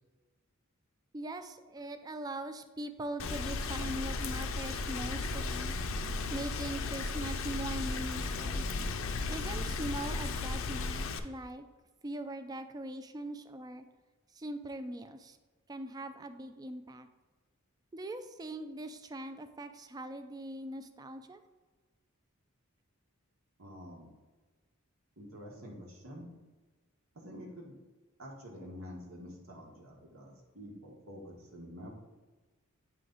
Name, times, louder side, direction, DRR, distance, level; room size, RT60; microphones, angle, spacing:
voice 1, 1.1-5.8 6.3-8.7 9.3-11.7 12.0-13.8 14.3-15.4 15.7-17.1 17.9-21.4, right 1 dB, 20° right, 9 dB, 0.3 m, -41 dB
Rain, 3.2-11.2, left 3 dB, 70° left, 0.5 m, -35 dB
voice 2, 23.6-24.1 25.2-26.3 27.1-27.8 28.2-31.9, equal, 75° right, -1 dB, 1.4 m, -48 dB
8.5 x 3.2 x 3.9 m, 1.3 s
head